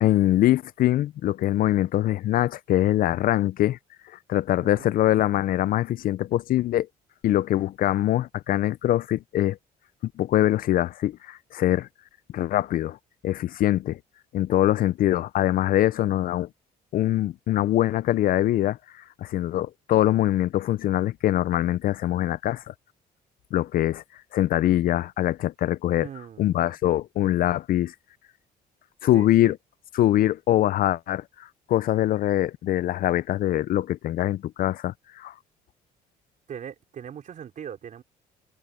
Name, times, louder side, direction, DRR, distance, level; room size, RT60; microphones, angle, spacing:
voice 1, 0.0-3.8 4.3-6.9 7.2-9.6 10.2-11.9 12.3-13.0 13.2-14.0 14.3-16.5 16.9-18.8 19.2-22.7 23.5-24.0 24.3-26.1 26.4-27.9 29.0-29.6 29.9-35.3, left 13 dB, 55° left, 0.5 m, -23 dB
voice 2, 26.0-26.8 29.1-29.5 36.5-38.0, right 8 dB, 50° right, 4.4 m, -40 dB
cardioid pair, 110°, 17 cm